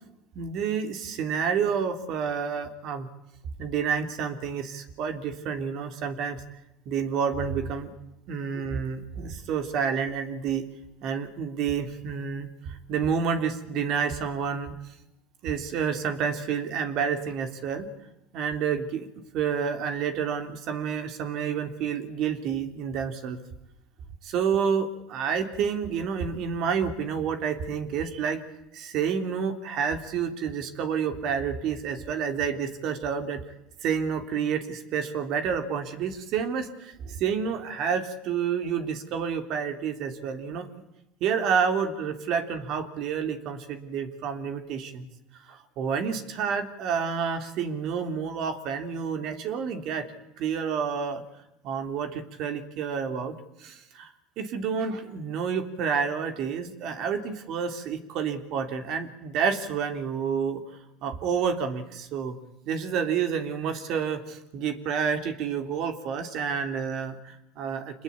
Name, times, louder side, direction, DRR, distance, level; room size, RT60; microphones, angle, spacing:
voice 1, 0.3-3.1 3.6-6.4 6.8-7.9 8.3-10.7 11.0-14.7 15.4-17.9 18.3-19.1 19.3-23.4 24.2-28.4 28.7-33.4 33.8-40.7 41.2-45.1 45.4-50.1 50.4-51.2 51.6-53.3 53.6-60.6 61.0-62.4 62.6-68.0, right 6 dB, 60° right, 7 dB, 3.4 m, -29 dB
26.5 x 20.5 x 8.7 m, 0.89 s
supercardioid pair, 95°, 0 cm